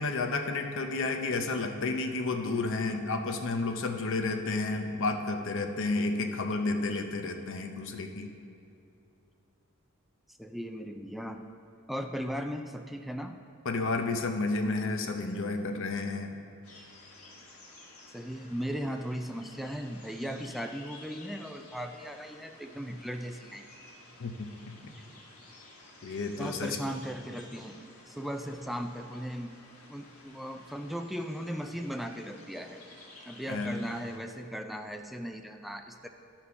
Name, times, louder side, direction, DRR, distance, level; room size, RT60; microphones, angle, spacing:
voice 1, 0.0-8.3 13.6-16.3 24.2-24.5 24.8-24.9 26.0-26.8 33.5-33.8, left 3 dB, 65° left, 5 dB, 0.7 m, -31 dB
voice 2, 10.3-11.4 11.9-13.4 18.1-23.6 26.1-27.8 28.1-29.6 29.9-32.8 33.3-36.1, equal, ahead, 5 dB, 0.3 m, -37 dB
sound 1, 16.6-34.2, left 2 dB, 85° left, 1.8 m, -53 dB
12.5 x 4.4 x 5.6 m, 2.7 s
head